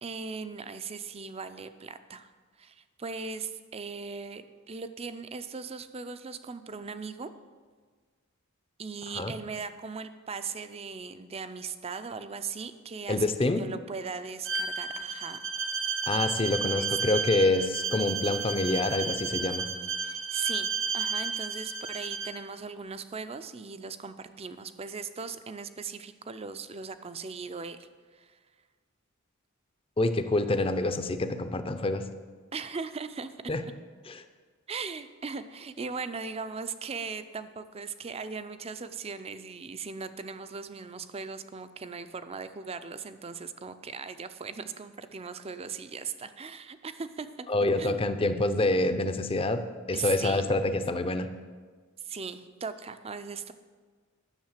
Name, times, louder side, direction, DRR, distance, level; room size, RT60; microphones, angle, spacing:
voice 1, 0.0-2.3 2.6-7.3 8.8-15.4 16.6-17.2 20.0-28.4 32.5-33.3 34.7-47.5 47.8-48.1 49.9-50.5 52.0-53.5, right 5 dB, 30° right, 11 dB, 0.5 m, -39 dB
voice 2, 13.1-13.6 16.1-19.7 30.0-32.0 33.5-33.6 34.1-34.2 47.5-49.6 49.9-51.3, left 2 dB, 25° left, 9 dB, 0.6 m, -27 dB
Bowed string instrument, 14.4-22.4, right 5 dB, 65° right, 1.0 m, -32 dB
10.5 x 6.5 x 7.3 m, 1.5 s
head